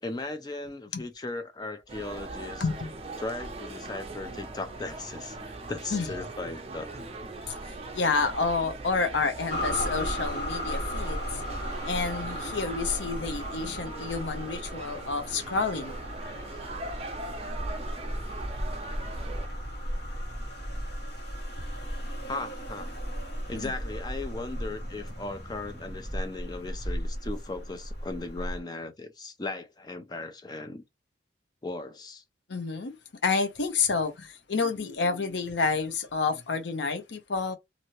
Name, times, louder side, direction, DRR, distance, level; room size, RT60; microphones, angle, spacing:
voice 1, 0.0-2.7 3.2-6.9 22.2-22.9 23.5-30.8 31.6-32.2, left 2 dB, 20° left, 0.4 m, -37 dB
sound 1, 1.9-19.5, right 2 dB, 35° right, 0.6 m, -41 dB
voice 2, 7.9-11.4 11.9-16.4 23.6-23.7 32.5-32.9 33.2-37.6, left 4 dB, 80° left, 0.6 m, -29 dB
sound 2, 9.5-28.6, equal, 60° left, 1.2 m, -35 dB
2.8 x 2.6 x 3.0 m
head